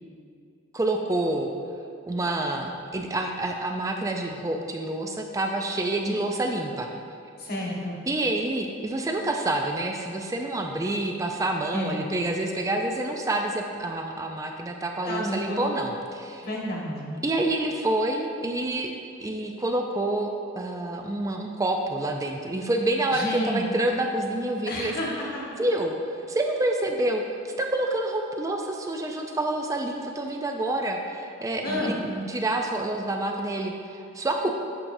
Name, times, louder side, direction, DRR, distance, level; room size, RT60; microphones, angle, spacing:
voice 1, 0.7-1.5 2.1-6.9 8.1-16.5 17.2-18.9 19.2-25.1 25.6-34.5, right 1 dB, 15° right, 3 dB, 0.3 m, -28 dB
voice 2, 7.4-8.0 11.7-12.0 15.1-15.6 16.4-17.1 23.1-23.6 24.7-25.6 31.6-31.9, left 1 dB, 45° left, -3 dB, 1.4 m, -30 dB
8.7 x 6.1 x 2.7 m, 2.5 s
head